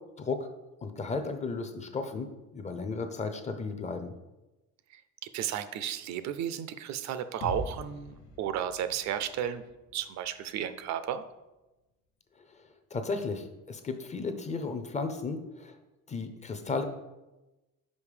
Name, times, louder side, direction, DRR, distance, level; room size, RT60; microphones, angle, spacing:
voice 1, 0.2-0.5 0.8-4.1 12.4-12.6 12.9-15.8 16.1-16.8, left 4 dB, 25° left, 8 dB, 0.5 m, -34 dB
voice 2, 5.3-9.6 9.9-11.2, right 9 dB, 65° right, 12 dB, 0.5 m, -33 dB
sound 1, 7.4-11.3, left 2 dB, 80° left, 0.9 m, -44 dB
5.3 x 5.2 x 4.9 m, 1.0 s
cardioid pair, 155°, 30 cm